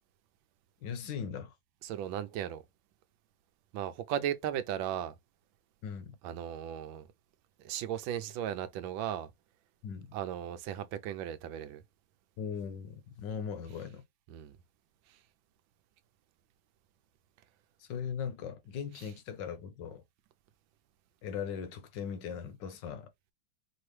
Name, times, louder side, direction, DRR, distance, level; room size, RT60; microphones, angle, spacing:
voice 1, 0.8-1.5 5.8-6.1 9.8-10.1 12.4-14.0 17.8-20.0 21.2-23.1, left 7 dB, 65° left, 1.3 m, -39 dB
voice 2, 1.8-2.6 3.7-5.1 6.2-7.0 7.6-9.3 10.1-11.8 14.3-14.6, right 10 dB, 75° right, 1.3 m, -36 dB
4.5 x 2.9 x 3.1 m
omnidirectional pair, 2.3 m